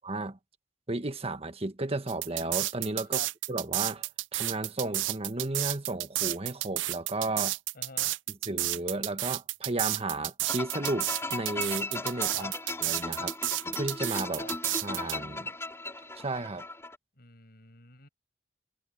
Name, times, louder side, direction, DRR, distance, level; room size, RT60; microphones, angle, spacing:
voice 1, 0.0-0.4 0.9-3.2 3.5-7.5 8.5-12.5 12.8-14.5 14.8-15.5 16.2-16.6, right 2 dB, 35° right, 1.4 m, -33 dB
sound 1, 2.1-15.2, right 17 dB, 90° right, 0.5 m, -31 dB
voice 2, 7.7-8.2 12.3-12.5 14.4-14.5 17.2-18.1, left 3 dB, 55° left, 5.7 m, -46 dB
sound 2, 10.4-17.0, left 2 dB, 15° left, 4.5 m, -37 dB
head